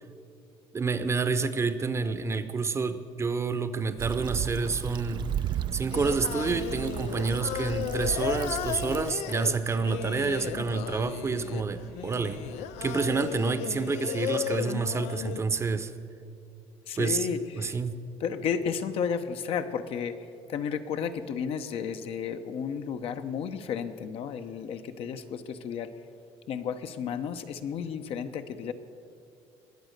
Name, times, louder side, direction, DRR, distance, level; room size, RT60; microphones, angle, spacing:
voice 1, 0.7-5.3 5.7-12.4 12.8-15.9 17.0-17.3 17.6-17.9, right 4 dB, 25° right, 11 dB, 0.8 m, -28 dB
Stream / Traffic noise roadway noise / Trickle dribble, 4.0-9.1, right 10 dB, 45° right, 0.4 m, -35 dB
sound 1, 5.2-13.2, right 5 dB, 85° right, 2.0 m, -50 dB
Singing, 5.9-15.4, left 13 dB, 85° left, 0.4 m, -35 dB
voice 2, 16.9-17.8 18.2-20.2 20.5-25.9 26.5-28.7, left 7 dB, 65° left, 8 dB, 0.9 m, -32 dB
21.0 x 8.2 x 6.6 m, 2.4 s
cardioid pair, 125°, 11 cm